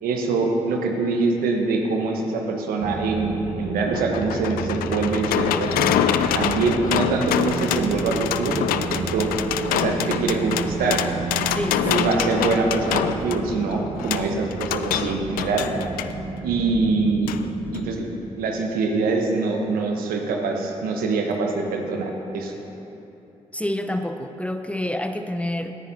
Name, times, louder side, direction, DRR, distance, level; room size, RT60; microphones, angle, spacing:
voice 1, 0.0-5.9 6.3-9.3 9.7-11.0 11.8-15.7 16.4-17.3 17.7-18.1 18.4-22.5, right 3 dB, 75° right, 2 dB, 1.2 m, -24 dB
sound 1, 2.8-17.9, right 4 dB, 45° right, 1.5 m, -33 dB
sound 2, 3.6-16.1 17.3-17.4 17.7-17.8, left 10 dB, 75° left, 0.4 m, -26 dB
voice 2, 11.5-12.1 23.5-25.7, left 1 dB, 10° left, 7 dB, 0.8 m, -28 dB
17.5 x 9.9 x 2.8 m, 2.9 s
hypercardioid pair, 40°, 15 cm